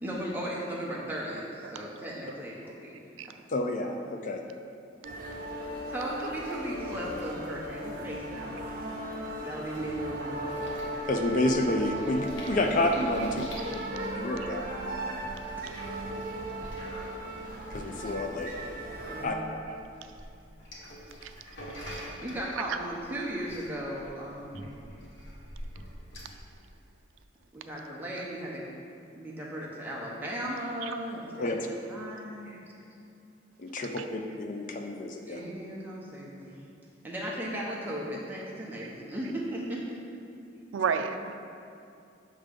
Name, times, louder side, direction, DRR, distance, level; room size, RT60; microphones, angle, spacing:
voice 1, 0.0-3.0 5.9-8.5 9.4-10.6 15.6-15.7 19.1-19.5 22.2-24.8 27.5-28.7 29.1-31.6 31.9-32.7 35.3-36.6 37.0-40.0, right 1 dB, 10° right, 0.8 m, -36 dB
voice 2, 3.5-4.4 11.1-13.4 14.1-14.6 17.7-18.5 19.2-19.4 31.4-31.7 33.6-35.4, left 1 dB, 40° left, 0.4 m, -29 dB
sound 1, 5.0-19.3, right 1 dB, 45° right, 0.7 m, -37 dB
sound 2, 10.4-26.4, equal, 75° left, 1.1 m, -46 dB
voice 3, 13.2-13.7 18.5-18.6 19.7-19.9 21.2-21.3 21.7-21.8 30.8-30.9 33.8-34.0 40.7-41.4, right 6 dB, 85° right, 0.4 m, -33 dB
6.4 x 3.7 x 5.1 m
head